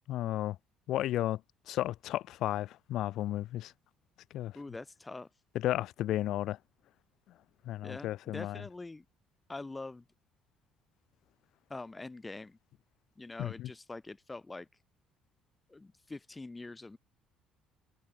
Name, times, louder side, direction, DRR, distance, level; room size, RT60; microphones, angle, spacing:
voice 1, 0.1-0.6 0.9-1.4 1.7-3.7 4.3-4.5 5.5-6.6 7.6-8.6 13.4-13.7, left 14 dB, 70° left, 1.1 m, -33 dB
voice 2, 4.5-5.3 7.8-9.1 9.5-10.0 11.7-12.6 13.2-14.7 15.7-17.0, left 3 dB, 15° left, 3.6 m, -44 dB
cardioid pair, 95°, 0 cm